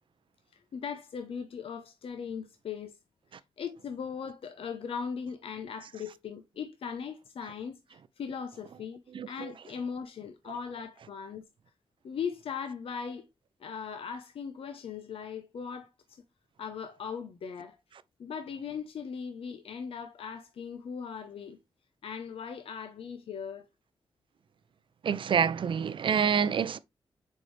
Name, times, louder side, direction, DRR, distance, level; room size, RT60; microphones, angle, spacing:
voice 1, 0.5-2.9 3.3-11.4 12.0-13.3 13.6-16.2 16.6-17.8 18.2-21.6 22.0-23.7, left 6 dB, 80° left, 0.8 m, -39 dB
voice 2, 9.1-9.5 25.0-26.8, right 7 dB, 65° right, 0.5 m, -27 dB
6.8 x 4.5 x 3.3 m
wide cardioid pair, 100°, 9 cm